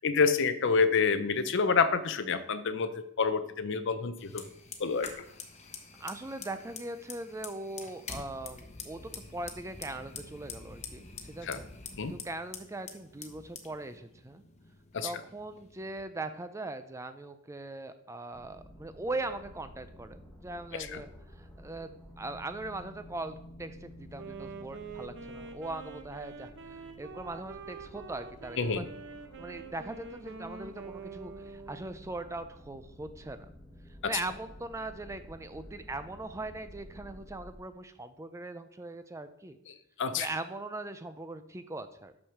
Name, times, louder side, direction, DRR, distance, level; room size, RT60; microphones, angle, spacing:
voice 1, 0.0-4.4 4.8-5.1 11.4-11.6 12.0-12.1 14.9-15.1 20.7-21.0 28.6-28.9 39.7-40.3, left 5 dB, 55° left, 12 dB, 0.6 m, -28 dB
Fire, 4.2-16.0, left 5 dB, 30° left, 0.9 m, -46 dB
voice 2, 6.0-11.6 12.1-14.4 15.0-21.1 21.4-28.7 29.4-33.5 34.0-39.6 40.1-42.1, right 2 dB, 15° right, 10 dB, 0.4 m, -40 dB
sound 1, 18.3-37.6, equal, 5° left, 1.6 m, -52 dB
Wind instrument woodwind instrument, 24.1-32.2, right 4 dB, 55° right, 0.8 m, -46 dB
6.4 x 6.1 x 5.9 m, 0.76 s
head